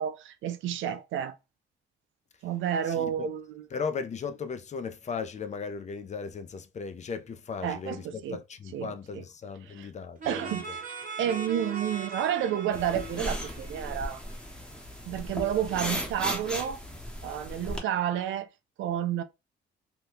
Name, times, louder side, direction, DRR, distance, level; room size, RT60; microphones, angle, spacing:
voice 1, 0.0-1.4 2.4-3.6 7.6-8.4 8.7-9.2 9.7-9.9 10.3-10.6 11.2-14.2 15.1-16.8 17.2-18.5 18.8-19.2, right 10 dB, 75° right, 0.4 m, -30 dB
voice 2, 2.9-3.3 3.7-10.8, left 5 dB, 35° left, 0.5 m, -37 dB
sound 1, 10.2-14.8, right 4 dB, 45° right, 0.9 m, -40 dB
sound 2, 12.7-17.8, equal, 5° left, 0.8 m, -36 dB
2.9 x 2.2 x 3.4 m
cardioid pair, 90°, 20 cm